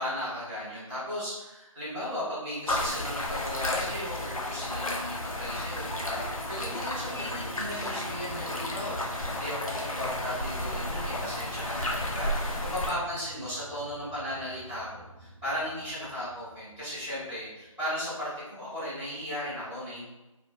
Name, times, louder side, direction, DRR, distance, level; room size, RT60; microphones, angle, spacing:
voice 1, 0.0-6.2 6.5-20.0, equal, ahead, -21 dB, 0.6 m, -36 dB
sound 1, 2.7-12.9, left 1 dB, 90° left, 0.6 m, -33 dB
sound 2, 5.7-17.9, right 2 dB, 40° right, 0.5 m, -47 dB
2.4 x 2.1 x 2.8 m, 1.0 s
figure-of-eight pair, 165°, 18 cm